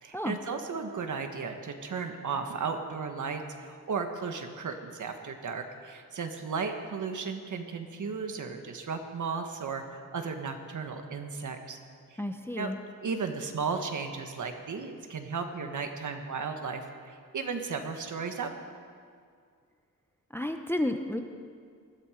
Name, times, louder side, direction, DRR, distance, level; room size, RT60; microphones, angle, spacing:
voice 1, 0.0-11.8 12.1-12.2 12.6-12.7 13.0-18.5, right 5 dB, 60° right, 5 dB, 1.5 m, -35 dB
voice 2, 12.2-12.8 20.3-21.2, left 1 dB, 5° left, 6 dB, 0.7 m, -31 dB
19.5 x 14.0 x 5.1 m, 2.1 s
wide cardioid pair, 165°, 35 cm